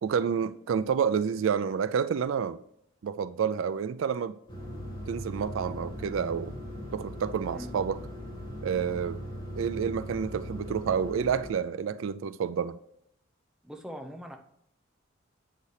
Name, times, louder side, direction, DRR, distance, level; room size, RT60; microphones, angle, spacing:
voice 1, 0.0-2.6 3.0-4.4 5.1-6.5 6.9-8.0 8.6-9.2 9.6-12.8, right 7 dB, 70° right, 0.3 m, -29 dB
sound 1, 4.5-11.5, equal, 25° left, 2.4 m, -39 dB
voice 2, 13.6-14.4, equal, 5° right, 0.7 m, -41 dB
8.1 x 8.0 x 3.3 m
head